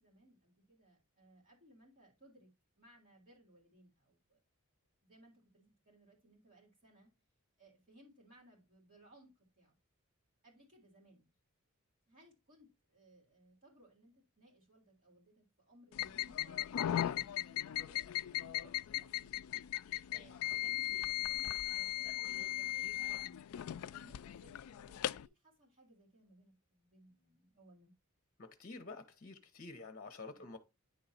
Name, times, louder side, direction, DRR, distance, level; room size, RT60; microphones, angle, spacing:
voice 1, 0.0-2.5 2.8-4.4 5.0-7.1 7.6-9.7 10.4-11.3 12.1-16.6 17.0-19.4 20.1-23.3 23.6-27.9 30.3-30.5, right 1 dB, 40° right, 3.6 m, -64 dB
sound 1, 15.9-25.3, left 13 dB, 75° left, 0.3 m, -38 dB
voice 2, 28.4-30.6, left 3 dB, 40° left, 1.0 m, -49 dB
10.0 x 3.9 x 4.2 m
head